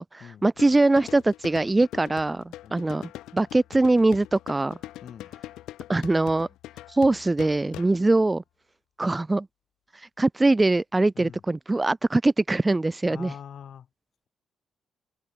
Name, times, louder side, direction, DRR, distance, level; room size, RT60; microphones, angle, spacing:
voice 1, 0.0-2.4 2.7-4.8 5.9-6.5 6.9-8.4 9.0-9.5 10.2-13.3, right 2 dB, 15° right, 0.6 m, -22 dB
sound 1, 0.6-8.1, left 15 dB, 90° left, 2.3 m, -43 dB
voice 2, 5.0-5.3 11.1-11.4 13.1-13.9, left 8 dB, 60° left, 6.6 m, -43 dB
cardioid pair, 90°, 0 cm